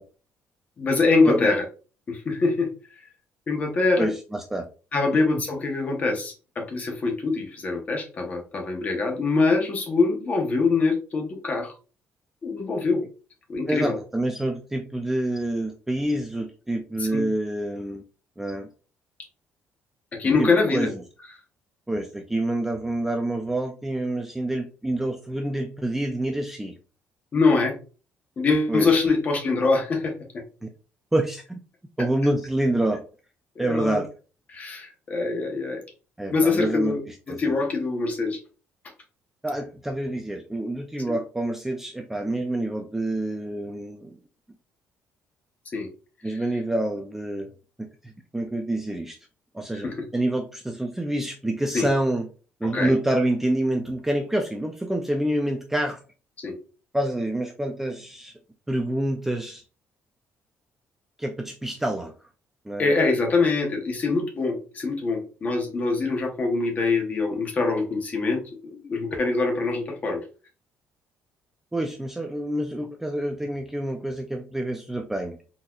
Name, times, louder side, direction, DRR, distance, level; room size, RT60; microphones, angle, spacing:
voice 1, 0.8-1.6 2.1-2.7 3.5-4.1 4.9-11.7 12.4-13.0 13.5-14.0 17.0-17.2 20.2-20.9 27.3-27.8 28.4-30.1 33.6-34.0 34.5-35.8 36.3-37.0 37.3-38.4 41.1-41.2 45.7-45.9 46.2-46.4 49.7-49.9 51.7-51.9 52.7-52.9 56.4-56.5 62.8-70.2, left 3 dB, 30° left, 3 dB, 0.9 m, -24 dB
voice 2, 4.0-4.7 13.7-18.0 18.4-18.7 20.4-20.9 21.9-26.7 28.7-28.9 30.6-30.7 31.1-31.6 32.0-33.1 33.6-34.1 36.2-37.0 37.3-37.4 39.4-44.2 46.2-47.5 47.8-49.2 49.5-52.3 52.6-56.0 56.9-58.3 58.7-59.6 61.2-62.1 62.7-62.9 71.7-75.4, right 1 dB, 5° right, 3 dB, 0.3 m, -27 dB
4.0 x 2.7 x 2.3 m, 0.35 s
cardioid pair, 155°, 5 cm